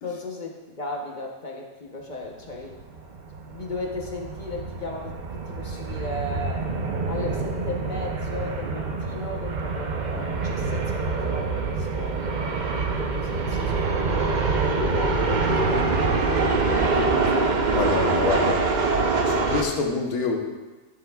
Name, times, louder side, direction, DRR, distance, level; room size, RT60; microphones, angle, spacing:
voice 1, 0.0-2.8 3.4-6.6 7.1-12.4 12.9-17.5, left 2 dB, 40° left, 0 dB, 0.8 m, -36 dB
sound 1, 2.5-19.6, right 3 dB, 50° right, 0.5 m, -25 dB
voice 2, 17.7-18.6 19.2-20.4, left 4 dB, 90° left, 1 dB, 1.5 m, -26 dB
11.5 x 7.0 x 2.3 m, 1.2 s
omnidirectional pair, 1.5 m